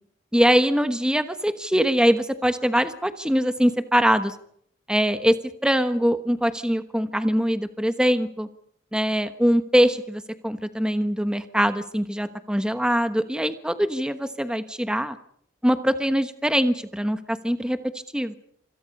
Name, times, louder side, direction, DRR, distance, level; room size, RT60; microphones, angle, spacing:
voice 1, 0.3-4.4 4.9-5.3 5.6-8.5 8.9-15.2 15.6-17.8 18.1-18.3, equal, 5° right, 9 dB, 1.1 m, -22 dB
27.0 x 26.5 x 5.5 m, 0.68 s
head